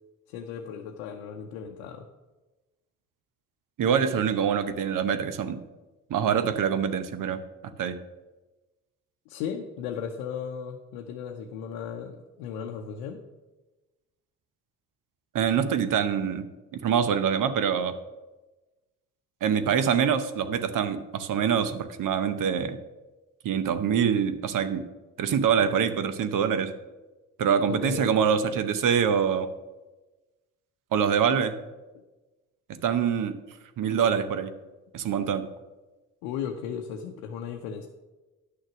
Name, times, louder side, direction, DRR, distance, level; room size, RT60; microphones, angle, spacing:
voice 1, 0.3-2.1 9.3-13.2 27.7-28.2 36.2-37.9, left 7 dB, 80° left, 2 dB, 0.7 m, -36 dB
voice 2, 3.8-5.6 6.1-7.4 7.8-8.0 15.3-16.5 16.8-18.0 19.4-22.8 23.4-24.9 25.2-26.7 27.4-29.5 30.9-31.6 32.8-33.4 33.8-34.5 34.9-35.5, right 7 dB, 60° right, 11 dB, 0.9 m, -25 dB
9.6 x 6.5 x 6.0 m, 1.1 s
hypercardioid pair, 45°, 36 cm